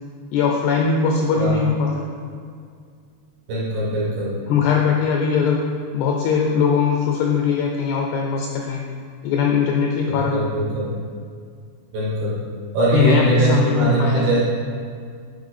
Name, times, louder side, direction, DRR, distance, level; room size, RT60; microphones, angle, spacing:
voice 1, 0.3-2.1 4.5-8.9 9.2-10.5 12.9-14.4, left 6 dB, 80° left, 0 dB, 2.4 m, -20 dB
voice 2, 3.5-4.4 10.1-10.9 11.9-12.4 12.7-14.4, right 2 dB, 65° right, -5 dB, 2.9 m, -21 dB
9.8 x 4.2 x 4.3 m, 2.2 s
omnidirectional pair, 5.2 m